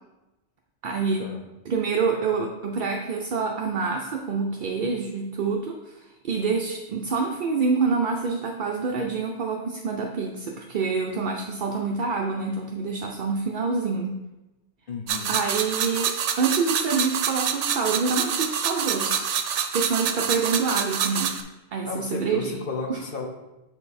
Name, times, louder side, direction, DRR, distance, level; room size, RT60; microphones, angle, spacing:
voice 1, 0.8-1.3 1.7-14.2 15.3-16.1 16.4-19.3 19.7-21.4 21.7-22.6 22.9-23.0, right 4 dB, 55° right, 1 dB, 0.6 m, -26 dB
voice 2, 14.9-15.4 21.8-23.3, left 4 dB, 55° left, 2 dB, 0.9 m, -33 dB
sound 1, 15.1-21.4, right 8 dB, 80° right, 0.9 m, -27 dB
6.7 x 3.9 x 4.1 m, 1.0 s
omnidirectional pair, 1.2 m